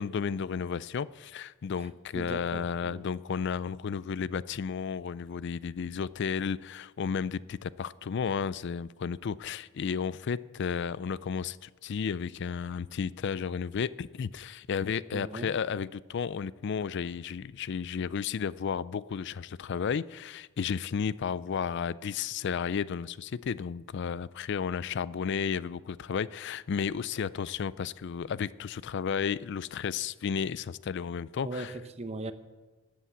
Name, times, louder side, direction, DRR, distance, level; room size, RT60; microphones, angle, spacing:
voice 1, 0.0-31.7, left 6 dB, 55° left, 19 dB, 0.4 m, -33 dB
voice 2, 2.1-3.0 15.1-15.5 31.4-32.3, right 2 dB, 30° right, 11 dB, 0.7 m, -39 dB
13.0 x 8.5 x 8.1 m, 1.3 s
head